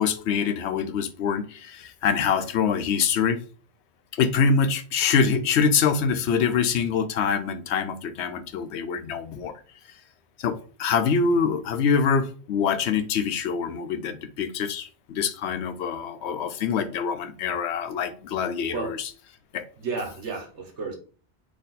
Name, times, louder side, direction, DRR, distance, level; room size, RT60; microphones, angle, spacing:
voice 1, 0.0-3.4 4.1-9.5 10.4-19.1 19.5-19.7, left 6 dB, 75° left, 10 dB, 0.9 m, -25 dB
voice 2, 19.8-21.0, right 4 dB, 85° right, 3 dB, 1.4 m, -32 dB
4.1 x 3.0 x 4.0 m, 0.40 s
omnidirectional pair, 1.2 m